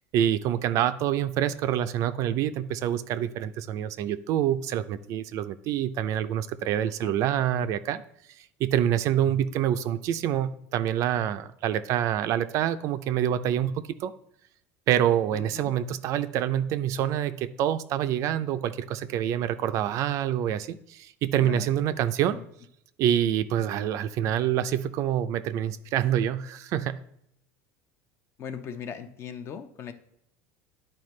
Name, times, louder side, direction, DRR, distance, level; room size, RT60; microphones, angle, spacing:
voice 1, 0.1-8.0 8.6-14.1 14.9-22.4 23.0-27.0, right 10 dB, 50° right, 11 dB, 0.4 m, -26 dB
voice 2, 6.8-7.2 15.3-15.7 21.4-21.7 22.3-22.4 28.4-29.9, left 7 dB, 35° left, 9 dB, 0.6 m, -39 dB
11.0 x 4.4 x 3.2 m, 0.73 s
supercardioid pair, 135°, 7 cm